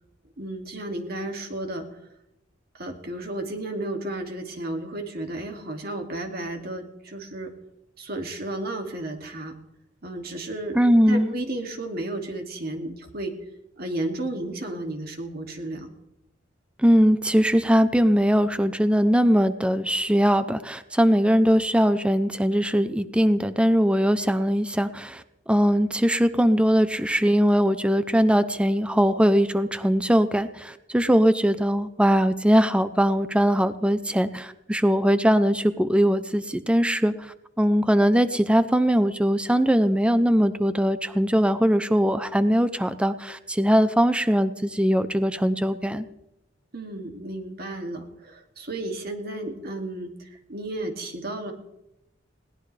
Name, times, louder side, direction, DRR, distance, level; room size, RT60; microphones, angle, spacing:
voice 1, 0.4-1.8 2.7-7.5 8.0-9.5 10.0-13.3 13.8-15.9 46.7-51.5, right 1 dB, 55° right, 3 dB, 2.5 m, -33 dB
voice 2, 10.7-11.3 16.8-46.0, equal, 5° right, 11 dB, 0.6 m, -21 dB
21.0 x 18.0 x 3.4 m, 0.87 s
head